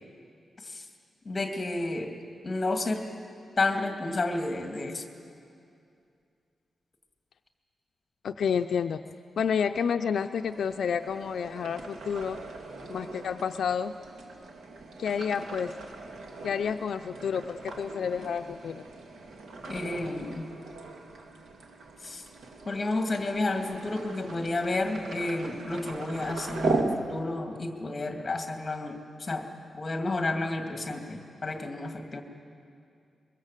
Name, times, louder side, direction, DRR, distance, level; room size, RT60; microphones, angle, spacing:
voice 1, 1.2-2.2 2.4-3.1 3.6-5.0 19.7-20.5 22.0-22.2 22.7-29.5 29.7-32.2, left 2 dB, 25° left, 4 dB, 2.4 m, -31 dB
voice 2, 8.2-9.0 9.4-12.4 12.9-13.9 15.0-15.8 16.4-18.8, left 7 dB, 75° left, 7 dB, 0.5 m, -29 dB
sound 1, 10.4-26.8, right 3 dB, 85° right, 2.2 m, -39 dB
23.5 x 22.5 x 7.5 m, 2.4 s
wide cardioid pair, 135°, 0 cm